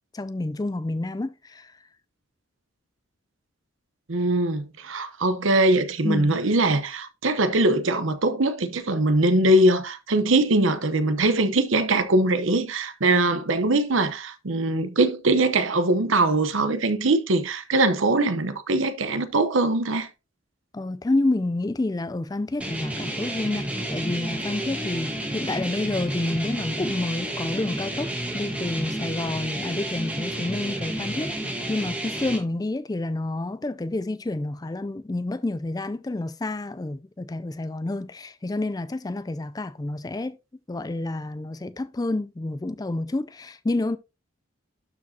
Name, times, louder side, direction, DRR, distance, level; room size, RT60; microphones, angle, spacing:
voice 1, 0.1-1.8 6.0-6.4 20.7-40.4 40.7-44.0, left 2 dB, 20° left, 0.4 m, -29 dB
voice 2, 4.1-20.1, right 2 dB, 70° right, 0.9 m, -22 dB
sound 1, 22.6-32.4, right 1 dB, 5° right, 1.3 m, -31 dB
12.0 x 4.9 x 2.8 m
head